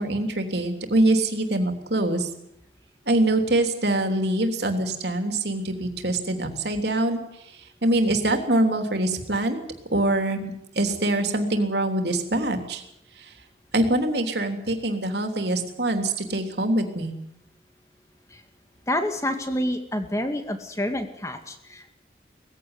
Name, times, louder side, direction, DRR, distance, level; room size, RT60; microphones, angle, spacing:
voice 1, 0.0-2.3 3.1-7.2 7.8-9.6 9.9-12.8 13.7-17.1, right 1 dB, 65° right, 5 dB, 3.3 m, -24 dB
voice 2, 18.9-21.9, left 1 dB, 15° left, 7 dB, 2.2 m, -28 dB
20.5 x 15.5 x 9.8 m, 0.80 s
head